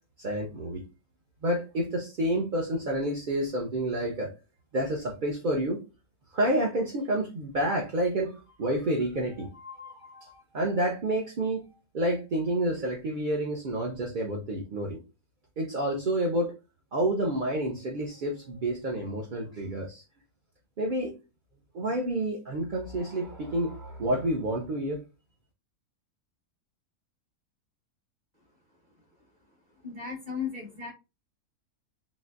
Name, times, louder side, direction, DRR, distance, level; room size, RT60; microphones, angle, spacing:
voice 1, 0.2-0.8 1.4-4.3 4.7-5.8 6.3-11.6 11.9-15.0 15.6-16.5 16.9-20.0 20.8-21.1 21.7-25.0, right 1 dB, 55° right, -1 dB, 0.5 m, -29 dB
voice 2, 29.8-30.9, left 6 dB, 30° right, -1 dB, 1.0 m, -35 dB
4.0 x 2.9 x 2.4 m, 0.29 s
omnidirectional pair, 1.7 m